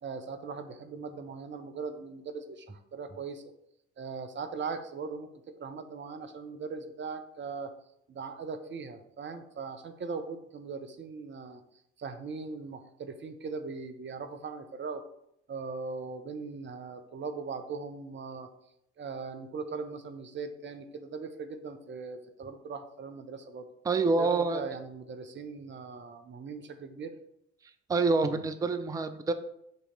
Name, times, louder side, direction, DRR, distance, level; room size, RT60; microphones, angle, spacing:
voice 1, 0.0-3.4 4.0-7.7 8.1-11.6 12.0-15.0 15.5-18.5 19.0-23.7 24.2-27.1, right 4 dB, 30° right, 9 dB, 0.8 m, -39 dB
voice 2, 23.8-24.6 27.9-29.3, right 3 dB, 10° right, 10 dB, 0.4 m, -26 dB
6.7 x 2.9 x 5.2 m, 0.77 s
figure-of-eight pair, 50°, 36 cm